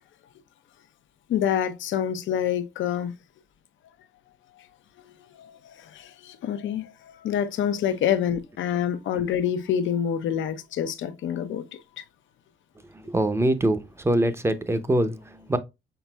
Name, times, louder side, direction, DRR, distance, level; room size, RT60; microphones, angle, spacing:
voice 1, 1.3-3.1 4.6-4.7 5.4-11.8, left 9 dB, 75° left, 0.7 m, -27 dB
voice 2, 12.9-15.6, right 1 dB, 15° right, 0.6 m, -24 dB
5.9 x 4.0 x 2.3 m
cardioid pair, 90°, 20 cm